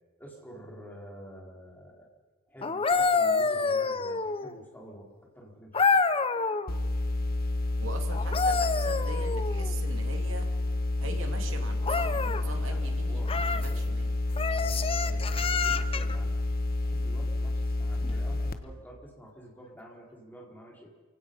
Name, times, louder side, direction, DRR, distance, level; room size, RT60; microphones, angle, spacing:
voice 1, 0.2-2.1 2.5-6.0 11.0-11.2 11.6-11.7 12.4-13.8 14.5-16.4 16.8-20.9, equal, 10° left, -2 dB, 4.5 m, -48 dB
sound 1, 2.6-4.6 5.7-6.7 8.1-9.7 11.8-12.4 13.3-13.7 14.4-16.2 18.0-18.2, left 4 dB, 30° left, 0.8 m, -27 dB
sound 2, 6.7-18.5, left 2 dB, 45° left, 1.2 m, -29 dB
voice 2, 7.8-10.5 11.0-13.2 13.5-14.1, right 2 dB, 70° right, 4 dB, 2.7 m, -42 dB
28.0 x 17.0 x 5.7 m, 1.3 s
head